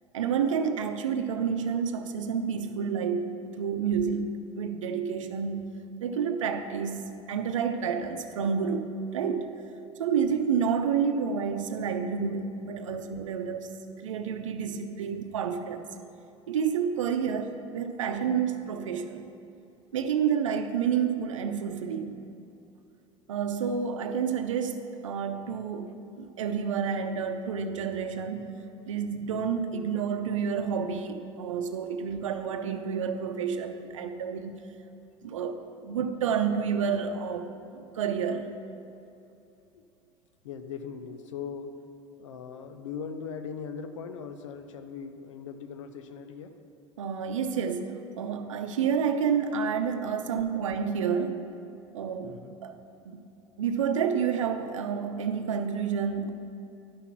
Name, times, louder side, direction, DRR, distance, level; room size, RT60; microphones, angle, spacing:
voice 1, 0.1-5.7 6.0-9.5 10.0-13.7 14.0-15.8 16.5-19.2 19.9-22.3 23.3-28.5 28.9-34.6 35.2-38.5 47.0-51.5 51.9-52.3 52.6-52.8 53.1-53.3 53.6-56.3, right 6 dB, 85° right, 8 dB, 0.7 m, -29 dB
voice 2, 40.4-41.8 42.2-46.6 52.2-52.6, left 6 dB, 80° left, 8 dB, 0.7 m, -39 dB
11.5 x 6.0 x 5.9 m, 2.7 s
hypercardioid pair, 75°, 16 cm